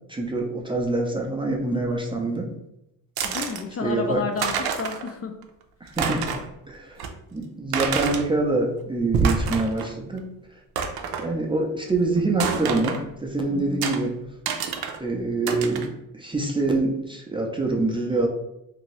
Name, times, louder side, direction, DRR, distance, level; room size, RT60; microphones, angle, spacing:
voice 1, 0.1-2.5 3.8-4.2 5.8-6.3 6.7-7.0 7.3-10.2 11.2-14.1 15.0-15.9 16.1-18.3, right 2 dB, 15° right, 0 dB, 0.4 m, -25 dB
voice 2, 3.2-5.4 13.5-13.9, left 4 dB, 40° left, 4 dB, 0.4 m, -31 dB
sound 1, 3.2-3.6 4.1-4.2 4.4-5.1 5.4-5.5 5.9-6.5 7.0-7.1 7.7-8.3 9.0-9.9 10.2-10.3 10.8-11.3 12.4-13.0 13.8-14.0 14.5-15.0 15.5-15.9, right 5 dB, 90° right, 0.5 m, -27 dB
2.7 x 2.6 x 3.0 m, 0.83 s
cardioid pair, 100°, 36 cm